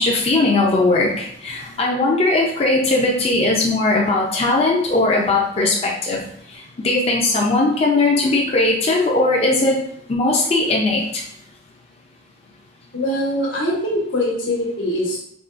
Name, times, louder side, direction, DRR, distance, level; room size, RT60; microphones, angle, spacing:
voice 1, 0.0-6.2 6.5-11.2, left 2 dB, 35° left, -3 dB, 0.4 m, -19 dB
voice 2, 12.9-15.2, left 1 dB, 90° left, -4 dB, 1.2 m, -22 dB
3.7 x 2.3 x 2.4 m, 0.70 s
head